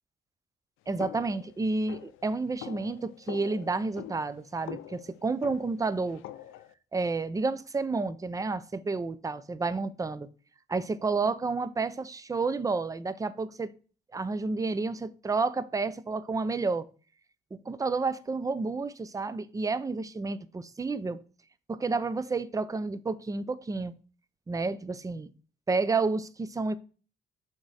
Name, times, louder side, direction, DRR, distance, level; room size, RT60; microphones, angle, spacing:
voice 1, 0.9-6.2 6.9-10.3 10.7-13.7 14.1-16.9 17.5-21.2 21.7-23.9 24.5-25.3 25.7-26.8, right 3 dB, 15° right, 0.5 m, -30 dB
sound 1, 1.0-6.7, left 13 dB, 85° left, 0.4 m, -45 dB
6.3 x 3.6 x 4.1 m
cardioid pair, 90°, 20 cm